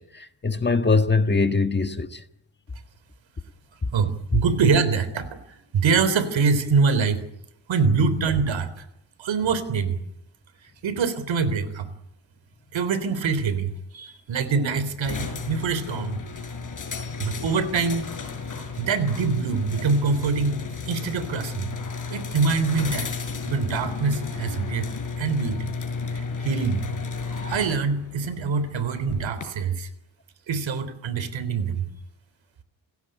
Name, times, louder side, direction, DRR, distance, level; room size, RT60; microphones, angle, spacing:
voice 1, 0.0-2.2, left 4 dB, 25° left, 1.5 m, -22 dB
voice 2, 3.9-7.2 7.7-8.7 9.2-10.0 10.8-11.9 12.7-16.2 17.2-18.1 18.8-21.7 22.1-23.1 23.4-24.9 25.2-25.7 26.1-26.8 27.5-29.9 30.5-31.9, right 5 dB, 75° right, 3.7 m, -24 dB
sound 1, 15.0-29.4, left 4 dB, 40° left, 6.2 m, -33 dB
29.0 x 17.0 x 9.1 m
wide cardioid pair, 130°, 46 cm